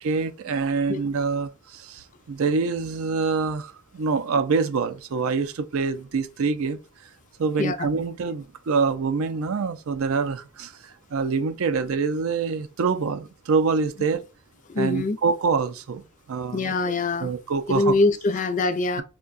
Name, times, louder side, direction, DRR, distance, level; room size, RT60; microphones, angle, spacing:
voice 1, 0.0-6.8 7.4-14.2 14.8-16.9 17.2-18.0, right 4 dB, 75° right, 0.4 m, -26 dB
voice 2, 14.7-15.2 16.5-17.3 17.7-19.0, left 3 dB, 35° left, 0.3 m, -23 dB
4.5 x 2.2 x 2.4 m
head